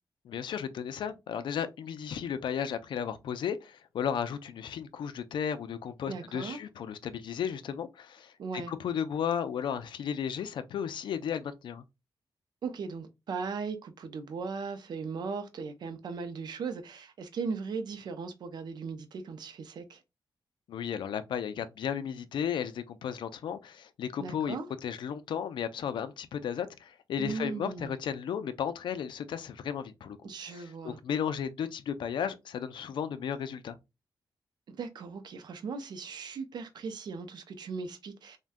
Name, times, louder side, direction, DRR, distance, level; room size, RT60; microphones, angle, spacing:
voice 1, 0.2-8.3 8.7-11.8 20.7-24.6 24.8-30.2 30.5-33.8, left 8 dB, 85° left, 0.4 m, -34 dB
voice 2, 6.1-6.6 8.4-8.7 12.6-20.0 24.2-24.7 27.2-27.9 30.2-31.0 34.7-38.4, right 5 dB, 65° right, 0.5 m, -38 dB
3.4 x 2.2 x 2.5 m
wide cardioid pair, 140°, 8 cm